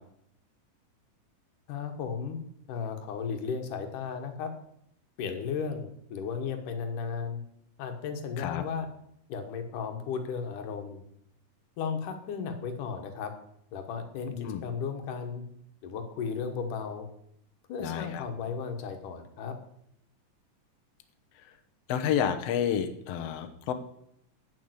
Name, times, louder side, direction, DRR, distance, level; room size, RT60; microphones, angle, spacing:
voice 1, 1.7-2.4 2.7-4.5 5.2-7.4 7.8-8.9 9.3-11.0 11.8-13.3 13.7-15.4 15.8-17.1 17.7-19.6, left 6 dB, 90° left, 6 dB, 3.0 m, -35 dB
voice 2, 14.3-14.6 17.8-18.2 21.9-23.7, left 9 dB, 65° left, 7 dB, 1.8 m, -30 dB
9.3 x 8.9 x 8.0 m, 0.75 s
omnidirectional pair, 3.6 m